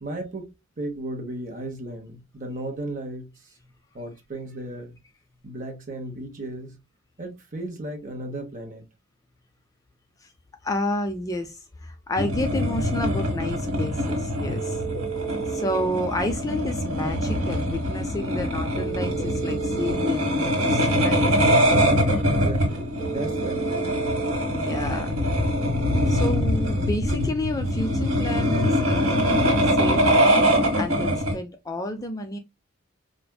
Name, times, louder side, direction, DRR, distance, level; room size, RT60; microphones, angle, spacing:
voice 1, 0.0-0.4 0.8-3.3 3.9-5.0 5.4-6.8 7.2-8.8 22.0-24.0, right 1 dB, 40° right, 0.9 m, -35 dB
voice 2, 10.6-14.8 15.5-21.3 24.5-25.1 26.1-30.4 30.8-32.4, left 1 dB, 15° left, 0.3 m, -30 dB
sound 1, 12.2-31.4, equal, 70° right, 1.4 m, -23 dB
sound 2, 14.5-15.9 18.7-20.2 23.0-24.4, right 8 dB, 50° left, 1.3 m, -32 dB
4.5 x 2.5 x 2.2 m
head